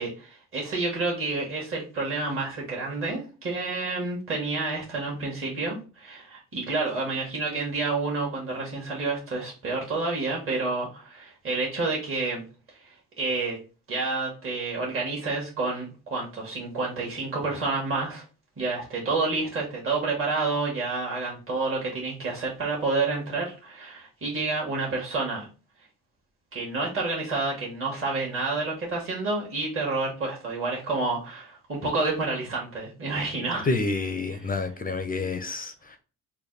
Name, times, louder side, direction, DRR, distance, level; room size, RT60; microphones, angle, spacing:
voice 1, 0.0-12.4 12.7-13.6 13.9-18.2 18.6-25.5 26.5-33.7 34.3-34.5, right 3 dB, 40° right, 1.4 m, -29 dB
voice 2, 33.7-36.0, left 3 dB, 25° left, 0.5 m, -28 dB
3.3 x 2.2 x 3.8 m
supercardioid pair, 65°, 33 cm